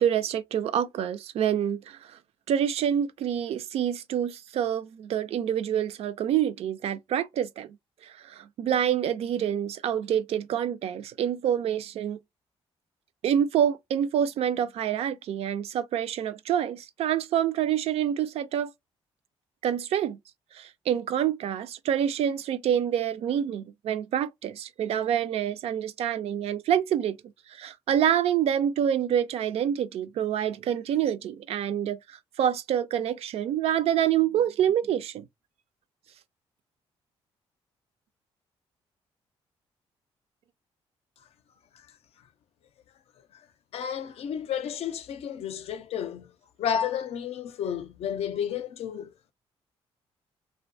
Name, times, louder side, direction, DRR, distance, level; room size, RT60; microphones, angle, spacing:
voice 1, 0.0-2.2 2.5-7.8 8.0-12.2 13.2-18.7 19.6-20.2 20.5-27.2 27.5-35.3, right 9 dB, 65° right, 0.4 m, -27 dB
voice 2, 43.7-46.3 46.6-49.1, left 8 dB, 65° left, 0.5 m, -31 dB
2.5 x 2.2 x 2.6 m
cardioid pair, 95°, 11 cm